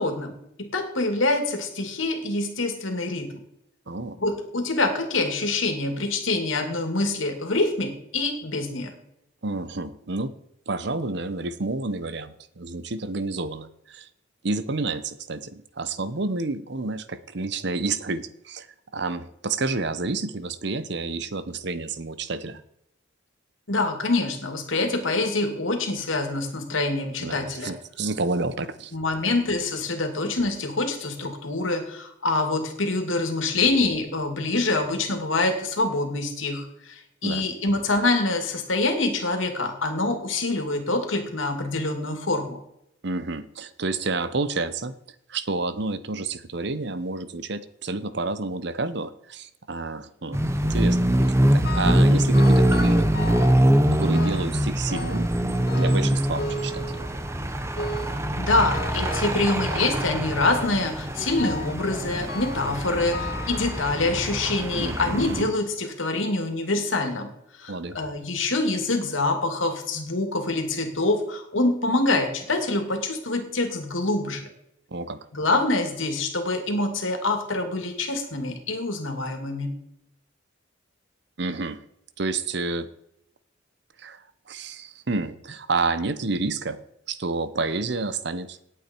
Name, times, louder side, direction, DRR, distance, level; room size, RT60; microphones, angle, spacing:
voice 1, 0.0-3.4 4.2-8.9 23.7-27.8 28.9-42.6 58.4-67.3 67.6-74.4 75.3-79.7, left 2 dB, 85° left, 5 dB, 2.5 m, -25 dB
voice 2, 3.9-4.2 9.4-10.3 10.7-14.1 14.4-18.7 18.9-22.6 27.2-29.0 37.2-37.5 43.0-44.9 45.3-50.4 50.7-51.3 51.5-53.1 54.0-57.0 64.7-65.5 67.7-68.0 74.9-75.2 81.4-81.8 82.2-82.9 84.0-86.8 87.1-88.6, right 3 dB, 60° right, 13 dB, 0.8 m, -30 dB
sound 1, 50.3-65.4, right 1 dB, 15° right, 0.8 m, -23 dB
sound 2, 51.6-52.1 52.3-53.6 54.1-54.6 54.9-55.4 55.7-57.3 57.8-58.2 58.7-59.4 59.7-60.2 60.5-60.9 61.4-61.8 62.3-62.7 63.1-64.2 64.8-64.9 65.7-65.8 66.3-66.4, left 2 dB, 50° left, 1.3 m, -36 dB
18.0 x 8.3 x 4.6 m, 0.79 s
head